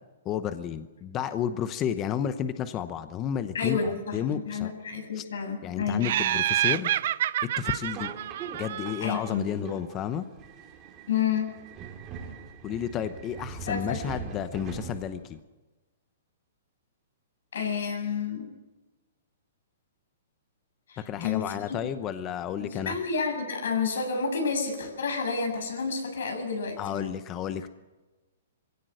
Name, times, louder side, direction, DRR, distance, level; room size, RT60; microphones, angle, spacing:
voice 1, 0.2-4.7 5.1-5.3 5.6-6.9 7.6-8.1 8.6-10.2 12.6-15.4 21.0-23.0 26.8-27.7, left 9 dB, 20° left, 11 dB, 0.9 m, -31 dB
voice 2, 3.5-6.0 9.0-9.5 11.1-11.5 13.7-14.0 17.5-18.5 20.9-21.9 22.6-27.1, left 5 dB, 80° left, 4 dB, 7.0 m, -30 dB
Laughter, 6.0-9.3, right 12 dB, 55° right, 0.6 m, -28 dB
Subway metro underground, 7.8-15.4, right 6 dB, 25° right, 2.8 m, -42 dB
22.0 x 16.5 x 7.9 m, 1.2 s
hypercardioid pair, 160°, 0 cm